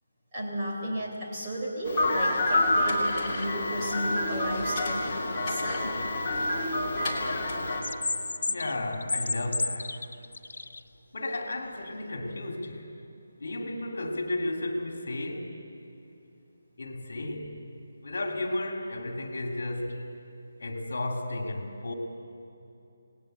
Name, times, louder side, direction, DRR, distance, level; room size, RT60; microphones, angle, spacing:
voice 1, 0.3-6.1, equal, 15° right, 3.9 m, -34 dB
sound 1, 1.8-7.8, left 1 dB, 15° left, 3.1 m, -28 dB
sound 2, 7.7-10.8, left 3 dB, 80° left, 1.0 m, -31 dB
voice 2, 8.5-10.1 11.1-13.0 13.4-15.6 16.8-17.5 18.0-20.1 20.6-21.9, left 1 dB, 60° left, 2.9 m, -33 dB
28.5 x 19.5 x 7.9 m
hypercardioid pair, 175°, 0 cm